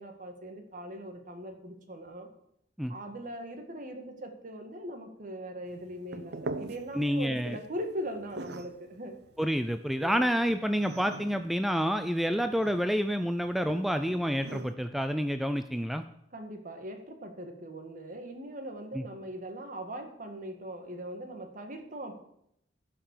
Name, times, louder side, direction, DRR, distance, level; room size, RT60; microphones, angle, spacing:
voice 1, 0.0-2.3 2.9-9.1 10.0-10.3 16.3-22.2, equal, 50° right, 5 dB, 1.9 m, -40 dB
sound 1, 5.7-14.7, right 2 dB, 65° right, 0.7 m, -44 dB
voice 2, 7.0-7.6 9.4-16.0 18.9-19.0, equal, ahead, 8 dB, 0.4 m, -28 dB
15.5 x 5.8 x 6.7 m, 0.74 s
head